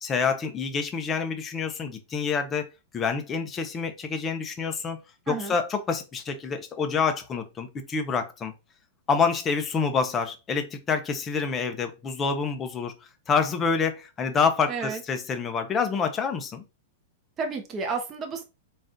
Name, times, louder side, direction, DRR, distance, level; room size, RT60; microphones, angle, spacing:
voice 1, 0.0-5.0 5.3-8.5 9.1-12.9 13.3-16.6, left 5 dB, 15° left, 0.6 m, -27 dB
voice 2, 14.7-15.0 17.4-18.4, right 4 dB, 20° right, 0.8 m, -31 dB
4.1 x 2.4 x 3.6 m
supercardioid pair, 160°, 0 cm